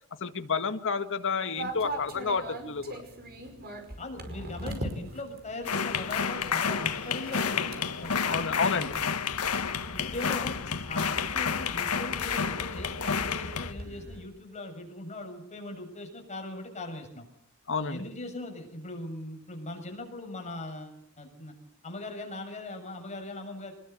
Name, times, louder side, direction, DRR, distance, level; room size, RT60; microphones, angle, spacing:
voice 1, 0.2-3.0 8.3-9.0 17.7-18.0, left 5 dB, 60° left, 8 dB, 1.8 m, -30 dB
sound 1, 1.6-14.2, right 1 dB, 45° right, 5.2 m, -42 dB
voice 2, 4.0-8.4 8.7-9.2 9.9-10.6 10.9-17.3 17.8-21.5 21.8-23.7, left 2 dB, 30° left, 3 dB, 7.0 m, -40 dB
sound 2, 5.7-13.7, left 6 dB, 80° left, 1.4 m, -30 dB
24.5 x 20.5 x 8.2 m, 0.70 s
head